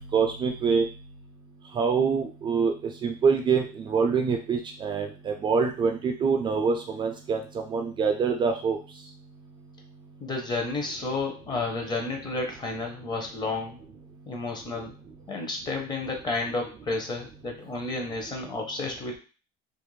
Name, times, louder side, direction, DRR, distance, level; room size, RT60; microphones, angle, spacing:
voice 1, 0.1-0.9 1.8-2.7 3.0-8.8, right 5 dB, 30° right, 3 dB, 0.3 m, -25 dB
voice 2, 10.2-13.8 14.3-14.9 15.3-19.2, left 3 dB, 25° left, 2 dB, 0.7 m, -31 dB
2.4 x 2.1 x 3.1 m, 0.35 s
cardioid pair, 120°, 16 cm